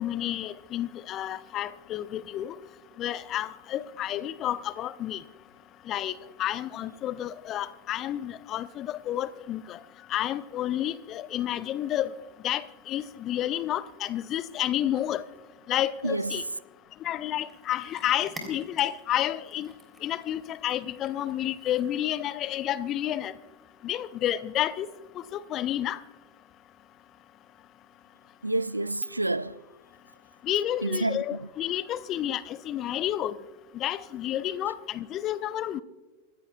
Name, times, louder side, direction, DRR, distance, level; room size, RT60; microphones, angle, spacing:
voice 1, 0.0-2.5 3.0-5.2 5.9-9.8 10.1-12.1 12.4-15.2 15.7-16.4 17.0-19.7 20.0-23.3 23.8-24.9 25.1-26.0 30.4-33.4 33.7-35.8, left 12 dB, 35° left, 0.6 m, -30 dB
voice 2, 16.0-16.4 28.4-29.6 30.8-31.5, right 2 dB, 85° right, 0.3 m, -29 dB
Cat, 17.0-22.2, equal, 10° right, 3.3 m, -49 dB
26.0 x 15.0 x 2.3 m
figure-of-eight pair, 90°, 0 cm